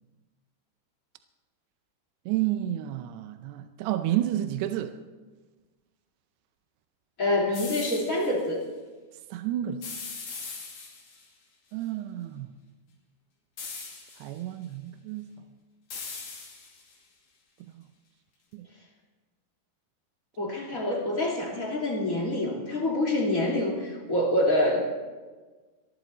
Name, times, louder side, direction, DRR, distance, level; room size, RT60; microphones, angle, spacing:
voice 1, 2.3-5.0 9.3-9.8 11.7-12.5 14.2-15.3 17.7-17.8 18.5-18.7 20.5-20.6, right 13 dB, 85° right, 2.8 m, -30 dB
voice 2, 7.2-8.6 20.4-24.8, left 1 dB, 25° left, 2.2 m, -26 dB
sound 1, 7.5-8.3 9.8-11.3 13.6-14.4 15.9-16.9, left 4 dB, 55° left, 3.6 m, -40 dB
27.5 x 11.0 x 4.1 m
omnidirectional pair, 4.7 m